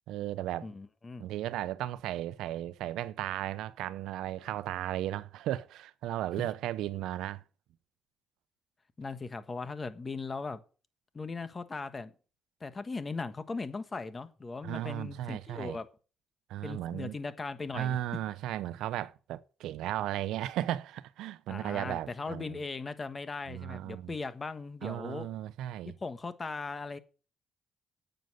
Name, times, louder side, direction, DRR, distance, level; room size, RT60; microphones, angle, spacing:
voice 1, 0.1-0.7 1.2-7.4 14.6-15.8 16.5-17.2 17.7-22.6 23.5-24.2 24.8-25.9, right 13 dB, 90° right, 0.7 m, -35 dB
voice 2, 0.6-1.2 9.0-10.6 11.1-12.1 12.6-15.9 16.6-18.0 21.5-25.3 26.0-27.0, left 4 dB, 30° left, 1.5 m, -38 dB
9.4 x 8.0 x 7.9 m
cardioid pair, 90°, 0 cm